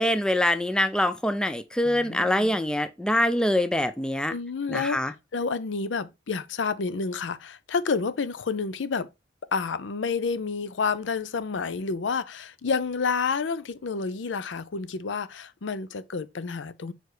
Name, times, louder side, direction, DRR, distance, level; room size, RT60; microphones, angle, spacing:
voice 1, 0.0-4.3 4.7-5.1, left 1 dB, 5° left, 0.5 m, -24 dB
voice 2, 1.9-2.6 4.3-5.0 5.3-9.1 9.5-16.9, left 5 dB, 85° left, 0.5 m, -29 dB
4.7 x 4.6 x 4.8 m
head